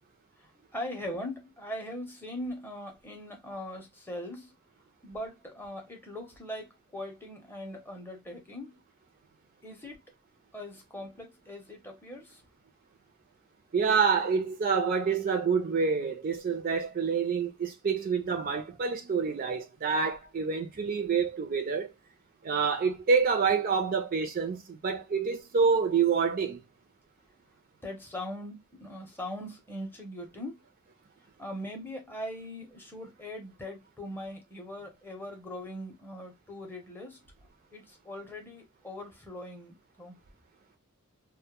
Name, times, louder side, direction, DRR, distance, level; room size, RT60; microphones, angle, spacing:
voice 1, 0.4-4.5 5.0-8.8 9.6-10.0 10.5-12.4 27.8-30.6 31.4-37.2 37.7-40.2, left 1 dB, 10° left, 0.6 m, -41 dB
voice 2, 13.7-21.9 22.4-26.6, right 5 dB, 40° right, 0.4 m, -27 dB
2.1 x 2.1 x 2.8 m
head